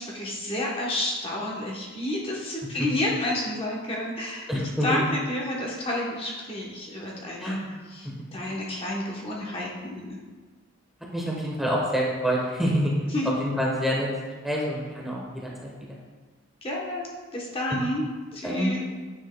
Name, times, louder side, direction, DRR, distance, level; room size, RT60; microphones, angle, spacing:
voice 1, 0.0-4.5 4.8-7.6 7.9-10.2 13.1-13.4 16.6-17.1 17.3-18.1 18.3-18.8, left 1 dB, 25° left, -3 dB, 1.0 m, -30 dB
voice 2, 4.5-5.0 7.4-7.7 11.1-12.9 13.4-14.1 14.4-15.7 18.4-18.8, equal, ahead, -4 dB, 1.0 m, -27 dB
9.4 x 6.1 x 2.2 m, 1.4 s
head